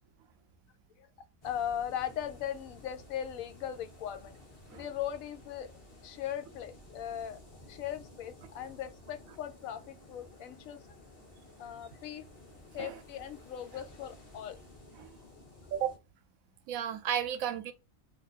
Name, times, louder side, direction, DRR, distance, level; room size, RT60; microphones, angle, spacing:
voice 1, 1.4-4.4 4.7-5.7 6.0-7.4 7.7-10.9 11.6-12.3 12.7-14.6, left 10 dB, 85° left, 1.0 m, -39 dB
sound 1, 1.4-16.0, left 2 dB, 30° left, 0.9 m, -54 dB
voice 2, 16.7-17.7, right 9 dB, 85° right, 1.0 m, -33 dB
2.6 x 2.4 x 4.0 m
omnidirectional pair, 1.4 m